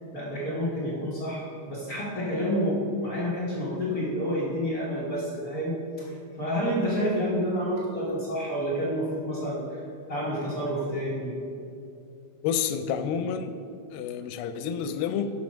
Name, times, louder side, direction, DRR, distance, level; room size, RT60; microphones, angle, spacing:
voice 1, 0.1-6.1 6.4-9.8 10.1-11.3, equal, 65° left, -6 dB, 0.9 m, -29 dB
voice 2, 12.4-13.5 13.9-15.3, left 7 dB, 90° left, 10 dB, 2.3 m, -29 dB
13.0 x 4.5 x 5.3 m, 2.6 s
omnidirectional pair, 3.9 m